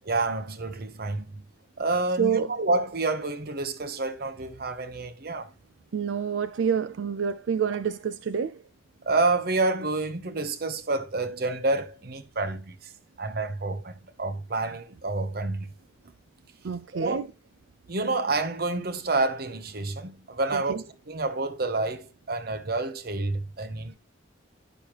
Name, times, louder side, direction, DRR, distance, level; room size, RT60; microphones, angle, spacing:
voice 1, 0.1-1.4 1.8-5.5 9.1-12.8 13.2-13.9 14.2-15.7 16.9-17.2 17.9-24.0, right 2 dB, 55° right, 0.9 m, -28 dB
voice 2, 2.2-2.5 5.9-8.6 16.6-17.3 20.5-20.8, right 6 dB, 80° right, 0.4 m, -27 dB
10.0 x 6.4 x 2.9 m
head